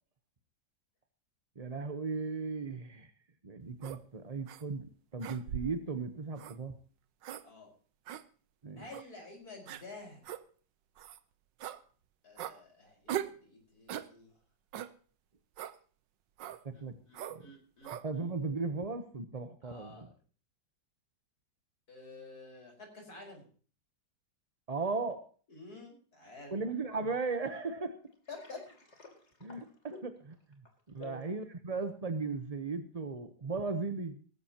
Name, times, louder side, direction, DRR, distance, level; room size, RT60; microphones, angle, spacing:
voice 1, 1.6-3.1 3.4-4.9 5.1-6.7 8.6-8.8 16.6-16.9 17.3-17.5 18.0-20.1 24.7-25.2 26.5-28.0 29.4-29.7 30.0-30.1 30.9-34.2, right 4 dB, 30° right, 8 dB, 0.7 m, -36 dB
sound 1, 3.8-4.0 4.5-4.6 5.2-5.8 6.4-6.6 7.2-7.4 8.1-8.2 8.9-9.1 9.7-9.8 10.2-10.4 11.0-11.2 11.6-11.8 12.4-12.6 13.1-13.4 13.9-14.1 14.7-14.9 15.6-15.8 16.4-16.6 17.1-17.4 17.8-18.1, right 10 dB, 80° right, 1.5 m, -40 dB
voice 2, 8.8-10.3 12.2-14.3 16.7-18.3 19.6-20.1 21.9-23.4 25.5-26.6 28.3-28.6 31.0-31.2, left 2 dB, 55° left, 1 dB, 5.5 m, -50 dB
Water, 28.1-31.2, left 2 dB, 40° left, 3.2 m, -59 dB
19.0 x 14.5 x 2.9 m, 0.42 s
omnidirectional pair, 1.9 m